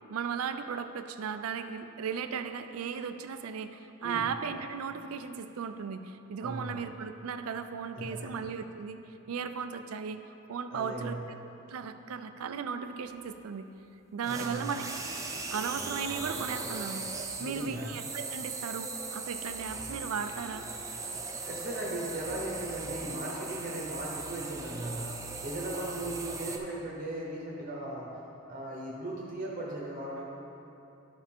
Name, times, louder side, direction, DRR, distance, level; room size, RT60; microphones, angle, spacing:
voice 1, 0.1-9.0 9.3-11.2 11.7-13.7 14.1-14.9 15.5-17.1 17.4-20.6, right 6 dB, 80° right, 9 dB, 0.4 m, -36 dB
voice 2, 4.0-4.3 6.4-6.8 7.9-8.3 10.7-11.2 14.3-14.7 17.4-17.9 21.4-28.2 28.5-30.2, right 1 dB, 40° right, -4 dB, 0.9 m, -37 dB
sound 1, 14.2-26.6, right 3 dB, 15° right, 0.4 m, -39 dB
12.0 x 4.8 x 3.6 m, 2.9 s
head